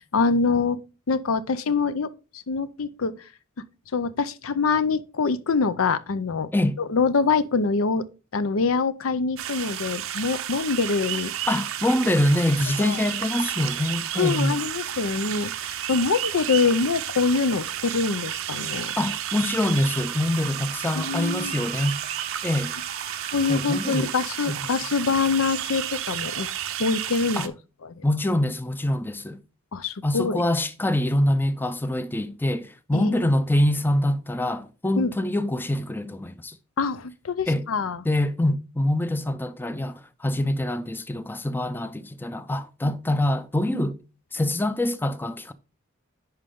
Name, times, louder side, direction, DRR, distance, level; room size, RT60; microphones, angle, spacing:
voice 1, 0.1-0.8 1.1-3.1 3.9-6.5 6.9-8.1 8.3-11.3 12.8-13.0 14.2-18.9 20.9-21.5 23.3-26.5 26.8-27.5 27.8-28.0 29.7-30.4 32.9-33.2 35.0-35.1 36.8-38.0 42.8-42.9 43.7-43.8, left 4 dB, 80° left, 0.6 m, -25 dB
sound 1, 9.4-27.5, right 11 dB, 75° right, 0.7 m, -32 dB
voice 2, 11.5-14.5 19.0-22.0 22.4-22.7 23.5-24.1 24.5-24.6 27.4-27.5 28.0-29.4 30.0-36.6 37.5-37.7 38.0-44.0 44.3-45.5, left 1 dB, 10° left, 0.5 m, -25 dB
Wind instrument woodwind instrument, 19.8-24.1, right 5 dB, 50° left, 1.1 m, -43 dB
10.5 x 4.4 x 3.6 m
head